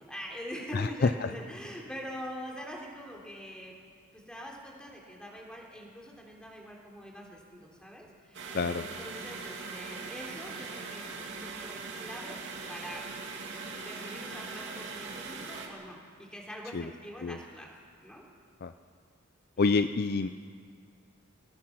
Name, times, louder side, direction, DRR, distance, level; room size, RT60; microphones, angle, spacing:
voice 1, 0.0-3.7 4.1-8.5 8.8-12.4 12.7-13.0 13.7-17.7 18.0-18.2 19.6-19.7, equal, 5° left, -1 dB, 3.4 m, -44 dB
voice 2, 0.7-1.3 8.5-8.8 16.7-16.9 17.2-17.4 18.6-18.7 19.6-20.3, left 4 dB, 45° left, 11 dB, 0.5 m, -27 dB
sound 1, 8.3-15.7, right 4 dB, 60° right, 2.7 m, -41 dB
25.0 x 18.5 x 6.0 m, 2.1 s
head